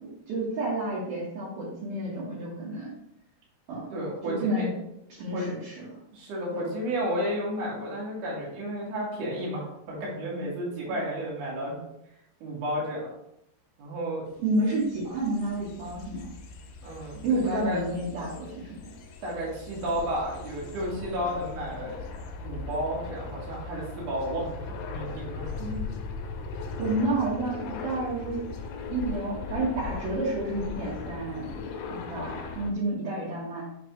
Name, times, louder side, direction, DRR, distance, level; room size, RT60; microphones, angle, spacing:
voice 1, 0.0-2.9 3.7-3.9 4.3-4.7 5.1-5.9 6.5-6.6 10.9-11.0 14.4-16.3 17.2-18.7 25.6-25.9 26.8-28.5 28.9-31.5 31.9-33.6, right 2 dB, 65° right, -8 dB, 2.8 m, -30 dB
voice 2, 3.9-4.7 5.3-5.5 6.1-11.8 12.4-13.1 13.8-14.2 16.8-17.8 19.2-22.1 22.4-24.6 24.9-25.6, equal, 45° right, -6 dB, 2.5 m, -32 dB
sound 1, 14.4-32.7, left 4 dB, 80° left, 2.8 m, -39 dB
8.6 x 3.3 x 3.9 m, 0.81 s
omnidirectional pair, 5.5 m